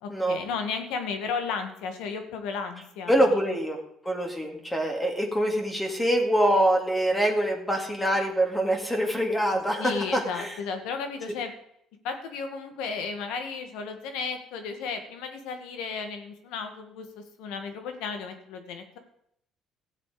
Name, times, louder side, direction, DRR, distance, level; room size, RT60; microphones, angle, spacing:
voice 1, 0.0-3.6 9.8-11.5 12.0-19.0, left 5 dB, 90° left, 7 dB, 1.9 m, -34 dB
voice 2, 3.1-3.8 4.0-10.5, right 1 dB, 10° left, 2 dB, 2.2 m, -25 dB
15.0 x 7.7 x 5.1 m, 0.73 s
cardioid pair, 110°, 0 cm